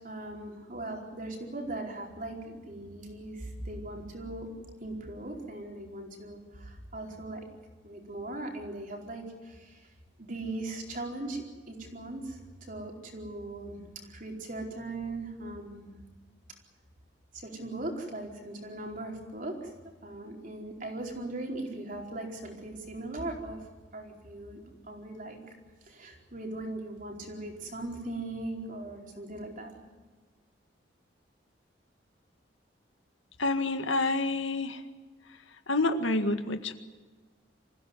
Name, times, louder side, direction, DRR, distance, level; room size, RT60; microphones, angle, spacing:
voice 1, 0.0-4.5 4.8-7.4 7.8-9.9 10.2-15.9 17.3-19.7 20.0-23.6 23.9-25.5 25.8-29.7, right 2 dB, 45° right, 1 dB, 4.6 m, -39 dB
voice 2, 33.4-34.8 35.3-35.4 35.7-36.7, left 2 dB, 90° left, 8 dB, 1.8 m, -28 dB
25.5 x 16.0 x 9.6 m, 1.3 s
head